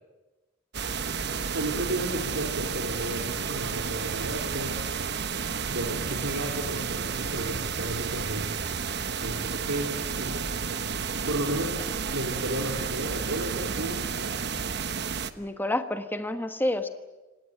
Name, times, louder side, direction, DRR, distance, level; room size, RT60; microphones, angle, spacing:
sound 1, 0.7-15.3, right 6 dB, 55° right, 1.1 m, -31 dB
voice 1, 1.5-4.8 5.7-8.5 9.2-10.5 11.3-11.7 12.1-14.5, right 1 dB, 80° right, 0 dB, 3.4 m, -33 dB
voice 2, 15.4-16.9, left 1 dB, 10° left, 8 dB, 1.3 m, -29 dB
26.0 x 18.0 x 9.0 m, 1.1 s
head